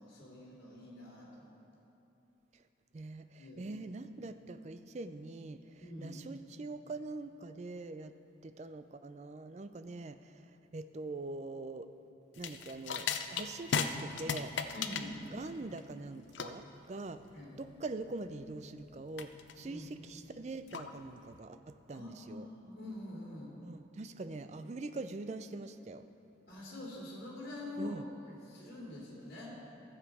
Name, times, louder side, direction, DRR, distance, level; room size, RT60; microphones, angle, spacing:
voice 1, 0.0-1.5 3.4-3.8 5.8-6.2 14.7-15.2 17.3-17.6 19.6-19.9 21.9-23.5 26.5-28.0 28.2-29.5, left 2 dB, 55° left, -6 dB, 2.6 m, -45 dB
voice 2, 2.9-8.1 8.4-11.9 12.4-14.5 15.3-17.2 17.6-22.5 23.6-26.0 27.8-28.1, right 2 dB, 40° right, 10 dB, 0.4 m, -43 dB
sound 1, 12.4-21.4, left 6 dB, 85° left, 0.5 m, -39 dB
14.0 x 7.3 x 4.8 m, 2.9 s
head